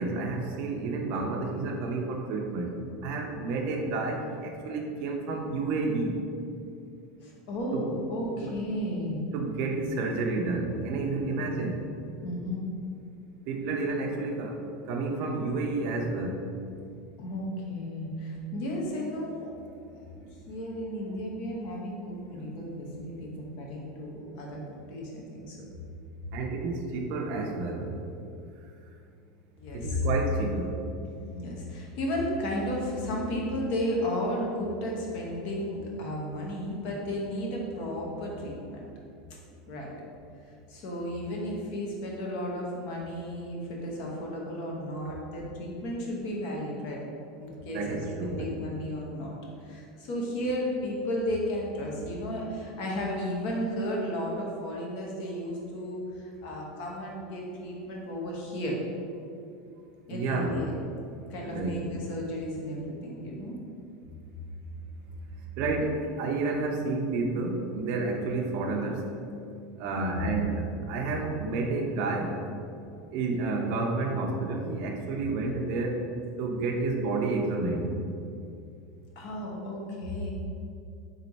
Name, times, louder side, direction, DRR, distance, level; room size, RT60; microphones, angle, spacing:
voice 1, 0.0-6.2 7.7-7.9 9.3-11.8 13.5-14.6 14.9-16.4 26.3-27.9 29.7-30.8 47.7-48.4 60.1-60.6 61.4-61.8 65.6-69.0 69.8-72.4 73.1-76.1 76.4-77.9, right 3 dB, 50° right, 1 dB, 0.6 m, -30 dB
voice 2, 7.2-9.2 11.3-11.4 12.2-12.6 17.2-19.5 19.9-24.6 24.9-25.6 29.6-30.0 31.3-38.9 39.7-39.9 40.7-47.0 47.4-49.3 49.6-58.7 60.1-60.7 61.3-63.6 69.9-70.4 79.2-80.3, equal, 50° left, -2 dB, 0.9 m, -34 dB
3.7 x 3.2 x 4.1 m, 2.5 s
supercardioid pair, 160°, 3 cm